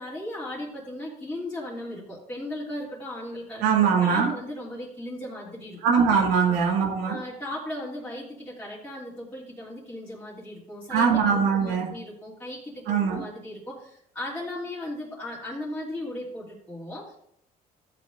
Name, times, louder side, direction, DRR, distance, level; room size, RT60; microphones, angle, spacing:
voice 1, 0.0-3.6 4.0-5.8 6.5-6.6 7.0-17.2, left 1 dB, 10° left, -7 dB, 2.8 m, -37 dB
voice 2, 3.6-4.3 5.8-7.2 10.9-11.9 12.9-13.2, right 6 dB, 90° right, -1 dB, 2.5 m, -22 dB
13.5 x 8.5 x 2.6 m, 0.72 s
cardioid pair, 110°, 17 cm